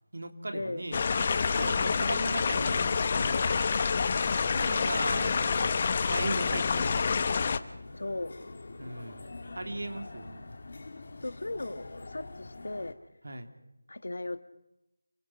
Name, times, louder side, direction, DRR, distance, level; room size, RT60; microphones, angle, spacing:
voice 1, 0.1-1.0 1.5-3.6 4.5-7.2 8.8-10.5 13.2-13.5, right 1 dB, 60° right, 3.1 m, -38 dB
sound 1, 0.9-7.6, left 5 dB, 30° left, 0.9 m, -27 dB
sound 2, 1.2-12.9, left 3 dB, 50° left, 2.5 m, -45 dB
voice 2, 7.9-8.4 11.2-12.9 13.9-14.4, left 2 dB, 65° left, 1.6 m, -36 dB
28.0 x 20.5 x 5.8 m
figure-of-eight pair, 165°, 0 cm